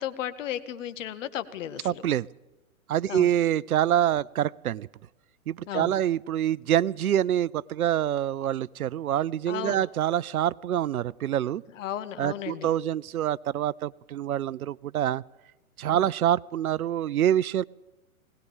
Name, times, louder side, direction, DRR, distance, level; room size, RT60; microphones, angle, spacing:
voice 1, 0.0-2.0 3.1-3.3 5.7-6.0 9.5-9.9 11.7-12.7 15.9-16.1, left 11 dB, 60° left, 11 dB, 1.9 m, -34 dB
voice 2, 1.8-2.3 2.9-4.9 5.5-11.6 12.2-15.2 15.8-17.6, right 11 dB, 80° right, 22 dB, 0.7 m, -26 dB
21.0 x 19.0 x 7.4 m, 1.0 s
hypercardioid pair, 125°, 43 cm